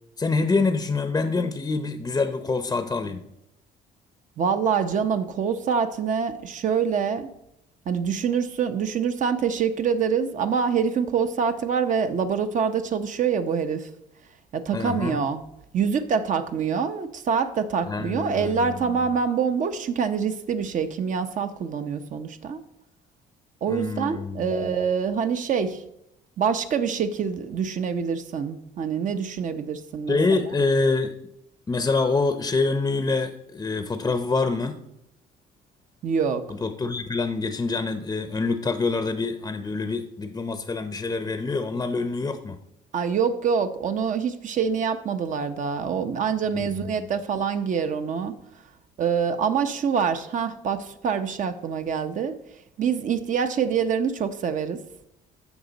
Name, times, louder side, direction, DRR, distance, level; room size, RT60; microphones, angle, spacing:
voice 1, 0.2-3.2 14.7-15.2 17.9-18.8 23.7-24.8 30.1-31.1 31.7-34.8 36.6-42.6 46.5-47.1, left 3 dB, 20° left, 8 dB, 0.6 m, -26 dB
voice 2, 4.4-7.3 7.9-13.9 14.5-15.4 15.7-22.6 23.6-25.8 26.4-30.4 36.0-36.5 42.9-48.4 49.0-52.3 52.8-54.8, right 6 dB, 50° right, 9 dB, 0.8 m, -25 dB
14.5 x 5.2 x 4.0 m, 0.82 s
cardioid pair, 110°, 17 cm